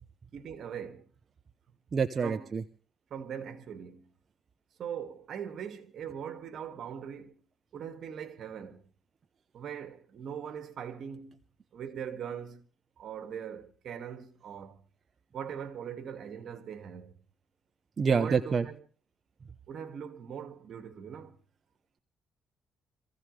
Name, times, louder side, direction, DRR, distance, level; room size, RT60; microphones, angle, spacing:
voice 1, 0.3-1.1 2.2-2.5 3.1-4.1 4.8-7.4 7.7-8.8 9.5-11.4 11.7-12.6 13.0-14.8 15.3-17.1 18.1-18.7 19.7-21.4, right 8 dB, 65° right, 2.2 m, -41 dB
voice 2, 1.9-2.6 18.0-18.7, right 5 dB, 40° right, 0.9 m, -27 dB
26.0 x 15.5 x 3.4 m
cardioid pair, 90°, 0 cm